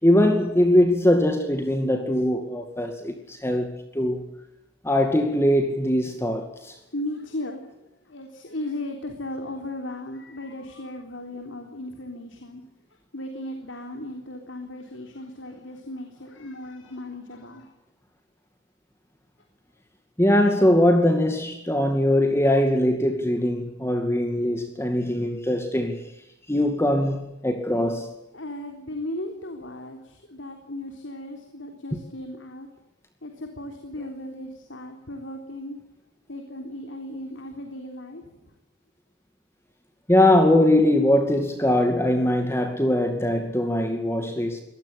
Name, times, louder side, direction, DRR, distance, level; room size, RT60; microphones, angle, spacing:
voice 1, 0.0-4.2 4.8-6.8 20.2-26.1 26.5-28.1 40.1-44.6, left 1 dB, 15° left, 2.3 m, -21 dB
voice 2, 6.9-12.6 13.1-17.7 28.3-32.7 33.2-35.8 36.3-38.5, left 1 dB, 85° left, 3.6 m, -36 dB
24.0 x 19.0 x 8.3 m
head